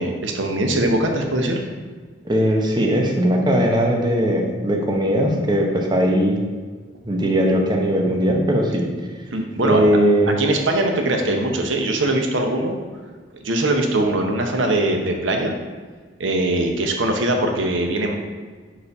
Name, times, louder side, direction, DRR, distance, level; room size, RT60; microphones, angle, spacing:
voice 1, 0.0-1.6 9.3-9.8 10.4-12.8 13.4-15.5 16.2-18.2, right 1 dB, 90° right, 3 dB, 0.8 m, -21 dB
voice 2, 2.2-6.4 7.0-8.9 9.6-10.3, equal, 25° right, 1 dB, 0.8 m, -19 dB
5.0 x 4.8 x 5.4 m, 1.5 s
head